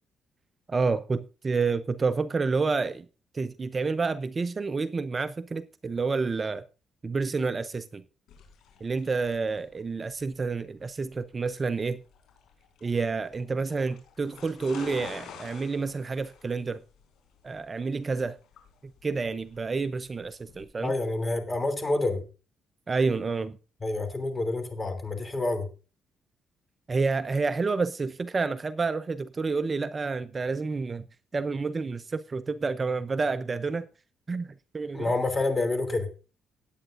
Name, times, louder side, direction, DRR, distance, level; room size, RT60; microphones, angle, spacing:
voice 1, 0.7-3.1 3.3-6.6 7.0-8.0 8.8-12.0 12.8-16.8 17.4-18.4 19.0-20.9 22.9-23.6 26.9-31.0 31.3-33.9 34.3-35.1, right 4 dB, 30° right, 0.6 m, -29 dB
sound 1, 8.3-20.6, left 6 dB, 85° left, 4.8 m, -49 dB
voice 2, 20.8-22.2 23.8-25.7 34.9-36.1, left 2 dB, 25° left, 3.0 m, -28 dB
18.5 x 8.9 x 2.6 m
cardioid pair, 90°, 0 cm